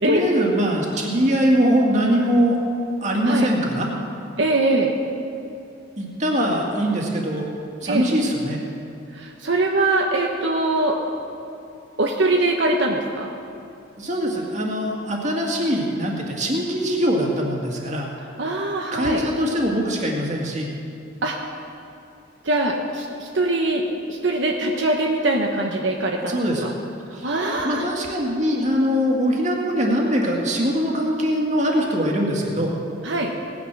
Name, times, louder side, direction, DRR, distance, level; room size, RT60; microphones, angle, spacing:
voice 1, 0.0-2.6 3.0-3.9 6.0-7.5 7.8-8.6 14.0-18.1 18.9-20.7 26.3-26.7 27.1-32.7, equal, 40° right, -1 dB, 2.1 m, -22 dB
voice 2, 4.4-4.9 7.9-8.1 9.2-11.0 12.0-13.3 18.4-19.2 21.2-21.3 22.4-23.8 24.1-26.7 27.2-27.8 33.0-33.3, right 2 dB, 70° right, 0 dB, 1.2 m, -22 dB
18.5 x 10.0 x 6.2 m, 2.6 s
head